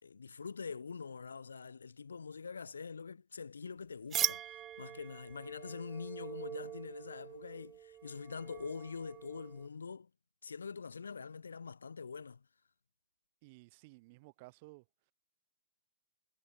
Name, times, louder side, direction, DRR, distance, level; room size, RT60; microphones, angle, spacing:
voice 1, 0.0-10.1 10.4-12.4, left 5 dB, 65° left, 3.9 m, -45 dB
sound 1, 4.1-9.7, right 11 dB, 20° right, 1.4 m, -41 dB
voice 2, 13.4-14.9, right 25 dB, 35° right, 3.9 m, -56 dB
figure-of-eight pair, 115°, 0 cm